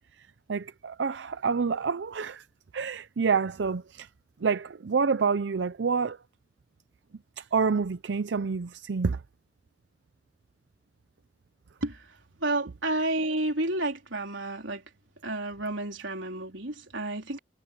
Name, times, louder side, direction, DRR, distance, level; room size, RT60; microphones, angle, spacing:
voice 1, 0.5-2.4 2.7-4.1 4.4-6.2 7.4-9.2, right 5 dB, 70° right, 0.5 m, -28 dB
voice 2, 12.4-14.8 15.2-17.4, right 2 dB, 85° right, 3.9 m, -30 dB
head